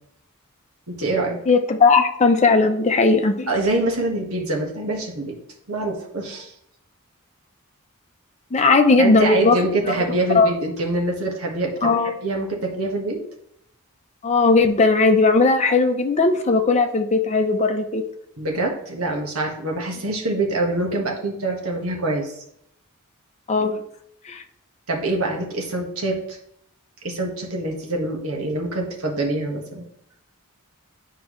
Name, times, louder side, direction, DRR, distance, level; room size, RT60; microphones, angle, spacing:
voice 1, 0.9-1.4 3.5-5.3 5.7-6.5 9.0-11.9 12.2-13.2 18.4-22.4 24.9-26.4 27.0-29.8, right 2 dB, 75° right, 0 dB, 1.5 m, -25 dB
voice 2, 1.5-3.5 8.5-9.6 10.3-10.5 11.8-12.1 14.2-18.0 23.5-23.8 24.3-24.4, left 3 dB, 30° left, 5 dB, 0.6 m, -17 dB
9.3 x 4.6 x 3.1 m, 0.74 s
head